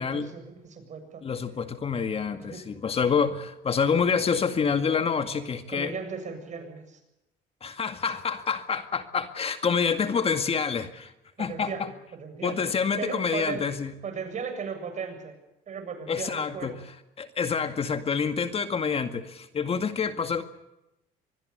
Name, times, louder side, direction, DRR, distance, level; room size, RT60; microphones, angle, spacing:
voice 1, 0.0-1.2 2.4-2.6 5.7-7.0 11.4-12.6 13.0-13.7 14.0-15.3 15.7-16.8, right 5 dB, 45° right, 8 dB, 7.5 m, -36 dB
voice 2, 1.2-5.9 7.6-11.1 11.4-11.9 12.4-13.9 16.1-16.8 17.2-20.4, left 6 dB, 35° left, 8 dB, 2.1 m, -27 dB
25.0 x 21.0 x 6.8 m, 0.92 s
cardioid pair, 100°, 16 cm